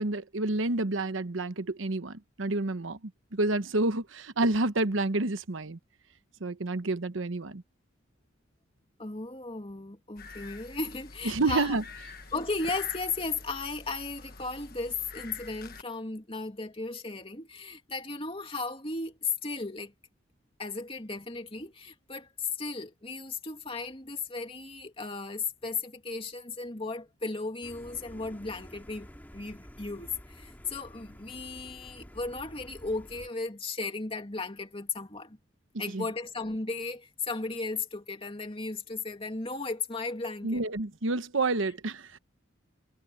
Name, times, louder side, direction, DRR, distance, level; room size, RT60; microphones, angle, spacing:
voice 1, 0.0-3.0 3.3-5.8 6.4-7.6 11.2-11.8 35.9-36.0 40.4-42.2, right 2 dB, 80° right, 1.0 m, -29 dB
voice 2, 9.0-11.8 12.3-19.9 20.6-35.4 35.8-40.6, left 3 dB, 30° left, 2.5 m, -35 dB
sound 1, 10.2-15.8, left 4 dB, 50° left, 1.5 m, -46 dB
sound 2, 27.6-33.3, equal, 10° left, 2.2 m, -50 dB
head